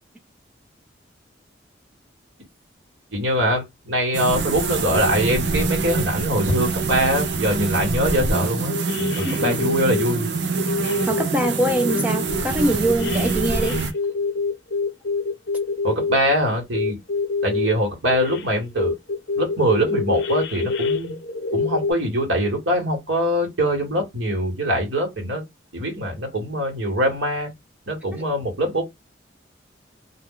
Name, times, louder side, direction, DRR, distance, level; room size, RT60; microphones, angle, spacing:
voice 1, 3.1-8.7 9.2-10.3 15.8-17.0 17.4-19.0 19.4-21.2 21.5-25.4 25.7-27.5 27.9-28.8, equal, 80° right, 1.3 m, -23 dB
sound 1, 4.1-13.9, right 4 dB, 65° right, 0.6 m, -25 dB
sound 2, 8.2-8.4 8.7-10.1 10.6-11.5 11.9-16.2 16.7-17.7 18.1-18.5 18.8-21.9, left 4 dB, 65° left, 0.6 m, -26 dB
voice 2, 11.0-13.8 28.1-28.2, right 1 dB, 10° right, 0.3 m, -23 dB
2.3 x 2.2 x 3.6 m
head